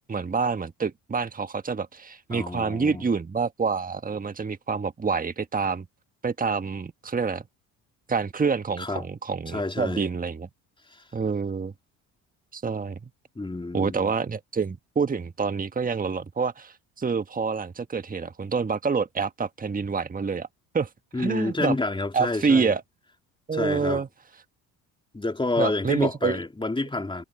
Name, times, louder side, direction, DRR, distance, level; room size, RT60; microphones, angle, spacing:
voice 1, 0.0-5.8 6.2-7.4 8.1-10.5 11.1-11.7 12.5-13.1 13.7-20.5 20.7-20.9 21.2-21.8 22.1-22.8 23.5-24.1 25.6-26.4, right 5 dB, 20° right, 1.5 m, -27 dB
voice 2, 2.3-3.1 8.8-9.1 9.5-10.0 10.9-11.0 13.3-14.1 21.1-22.7 23.5-24.0 25.1-27.2, left 2 dB, 10° left, 3.2 m, -29 dB
hypercardioid pair, 70°, 39 cm